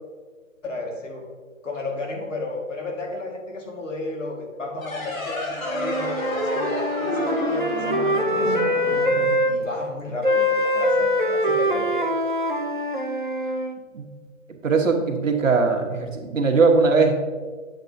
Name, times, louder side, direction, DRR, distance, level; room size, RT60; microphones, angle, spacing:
voice 1, 0.6-1.2 1.6-8.7 9.5-12.1, left 2 dB, 65° left, 0 dB, 1.9 m, -33 dB
sound 1, 4.8-10.0, left 1 dB, 90° left, 2.0 m, -30 dB
Wind instrument woodwind instrument, 5.6-9.5 10.2-13.8, equal, 40° right, 0.4 m, -23 dB
voice 2, 14.6-17.1, right 4 dB, 70° right, 2 dB, 1.3 m, -20 dB
7.9 x 6.8 x 2.7 m, 1.5 s
hypercardioid pair, 180°, 40 cm